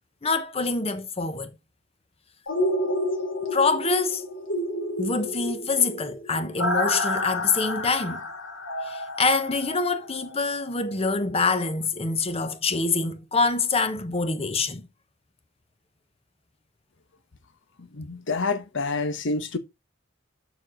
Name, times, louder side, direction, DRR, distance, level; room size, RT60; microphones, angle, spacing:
voice 1, 0.2-1.5 3.5-4.3 5.0-8.2 8.8-14.9, left 4 dB, 30° left, 0.9 m, -25 dB
sound 1, 2.5-10.3 10.7-10.8, left 1 dB, 85° left, 2.5 m, -30 dB
voice 2, 17.8-19.6, left 3 dB, 65° left, 1.0 m, -28 dB
7.1 x 6.2 x 3.9 m
head